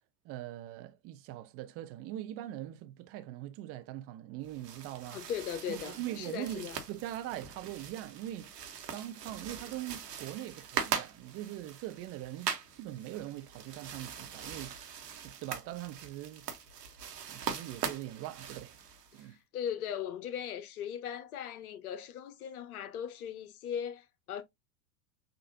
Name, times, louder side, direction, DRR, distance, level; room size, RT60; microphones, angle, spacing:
voice 1, 0.2-5.2 5.7-8.6 8.9-14.8 15.2-16.9 17.3-18.8 19.1-19.4, right 13 dB, 30° right, 0.6 m, -42 dB
sound 1, 4.4-19.3, right 7 dB, 70° right, 1.3 m, -41 dB
voice 2, 5.1-6.8 19.1-24.4, left 9 dB, 60° left, 0.9 m, -39 dB
6.6 x 2.6 x 2.7 m
figure-of-eight pair, 95°, 49 cm